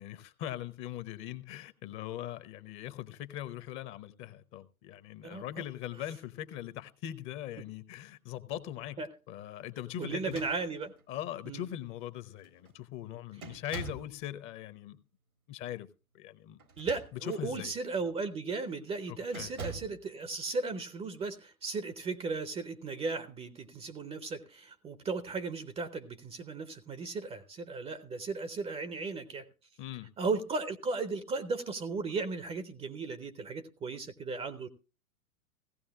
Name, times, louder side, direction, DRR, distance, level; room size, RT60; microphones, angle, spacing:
voice 1, 0.0-9.0 9.3-10.5 11.1-15.0 15.5-15.9 16.1-16.6 17.2-17.7 19.1-19.5 29.8-30.1, left 12 dB, 30° left, 0.8 m, -41 dB
voice 2, 10.0-10.9 11.5-11.7 16.8-29.5 30.2-34.7, right 4 dB, 15° right, 0.6 m, -36 dB
sound 1, 10.1-11.1 11.9-12.0 12.4-12.7 13.4-14.2 16.6-17.4 18.0-18.2 19.3-20.0, right 4 dB, 80° right, 1.8 m, -45 dB
17.0 x 15.5 x 2.3 m
figure-of-eight pair, 95°, 42 cm